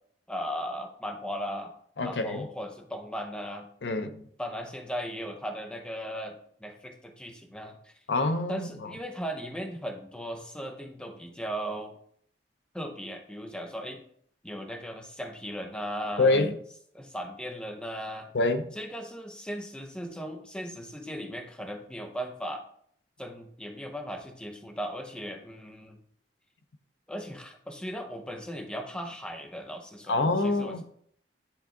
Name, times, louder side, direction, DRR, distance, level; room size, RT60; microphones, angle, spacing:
voice 1, 0.3-1.7 2.0-3.7 4.4-7.9 8.5-12.0 12.7-14.0 14.4-16.4 16.9-18.3 18.7-22.6 23.2-26.0 27.1-30.8, equal, 5° left, 0.7 m, -37 dB
voice 2, 2.0-2.5 3.8-4.2 8.1-8.9 16.2-16.6 18.3-18.7 30.1-30.8, left 2 dB, 85° left, 0.6 m, -26 dB
10.0 x 3.5 x 3.7 m
head